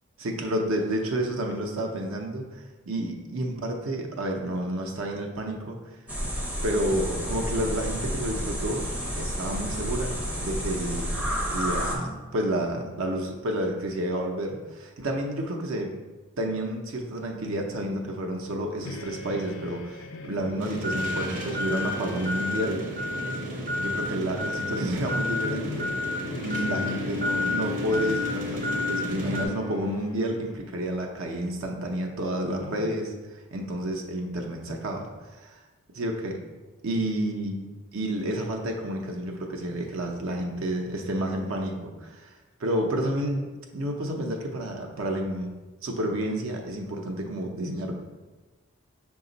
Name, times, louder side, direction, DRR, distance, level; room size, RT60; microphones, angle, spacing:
voice 1, 0.2-5.8 6.6-8.8 9.2-15.9 16.4-22.8 23.8-25.9 26.4-35.6 35.9-36.4 36.8-37.5 37.9-42.3 42.6-43.5 43.7-45.5 45.8-47.9, right 1 dB, 75° right, 2 dB, 0.6 m, -30 dB
sound 1, 6.1-12.0, equal, 5° right, 0.4 m, -30 dB
sound 2, 18.8-30.9, left 6 dB, 70° left, 0.3 m, -39 dB
sound 3, 20.6-29.5, left 1 dB, 40° right, 0.7 m, -30 dB
5.7 x 2.3 x 3.9 m, 1.2 s
head